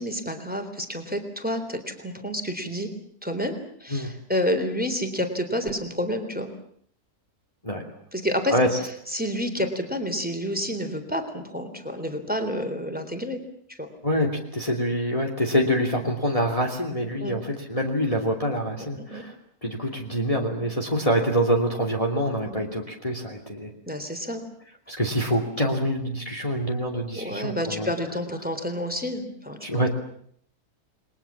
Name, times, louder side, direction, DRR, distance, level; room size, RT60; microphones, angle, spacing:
voice 1, 0.0-2.9 3.2-3.6 3.8-6.5 8.1-8.5 9.1-13.4 13.7-13.9 17.2-17.3 19.0-19.2 22.4-22.7 23.9-24.4 27.1-29.6, equal, 5° right, 6 dB, 3.6 m, -29 dB
voice 2, 14.0-19.3 19.6-23.7 24.9-27.9 29.6-29.9, equal, 20° left, 2 dB, 3.1 m, -25 dB
29.5 x 21.5 x 7.4 m, 0.64 s
omnidirectional pair, 1.7 m